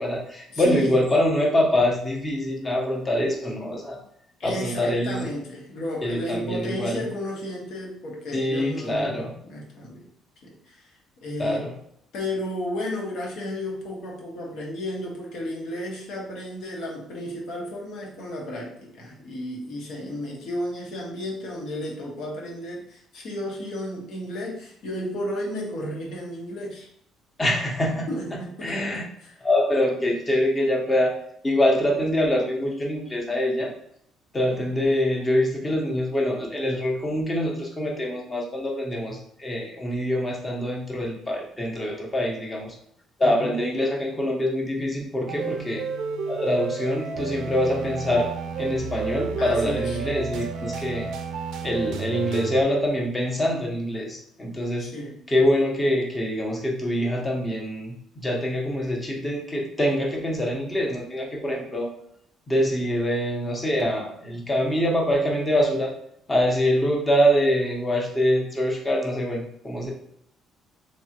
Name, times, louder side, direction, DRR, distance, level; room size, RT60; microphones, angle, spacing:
voice 1, 0.0-4.0 4.4-5.2 6.0-7.0 8.3-9.3 11.4-11.7 27.4-29.0 29.4-31.1 31.4-33.7 34.3-42.8 43.2-45.9 46.3-48.3 48.6-51.1 51.6-54.9 55.3-61.9 62.5-65.9 66.3-69.9, left 1 dB, 20° left, 0 dB, 0.9 m, -24 dB
voice 2, 0.5-0.9 4.4-10.1 10.4-11.6 12.1-26.9 28.1-29.4 29.9-30.0 43.2-43.6 49.4-50.0 54.8-55.2, left 1 dB, 70° left, -2 dB, 1.3 m, -33 dB
sound 1, 45.3-52.6, right 5 dB, 80° right, 0.4 m, -31 dB
3.4 x 3.2 x 2.9 m, 0.70 s
cardioid pair, 115°, 0 cm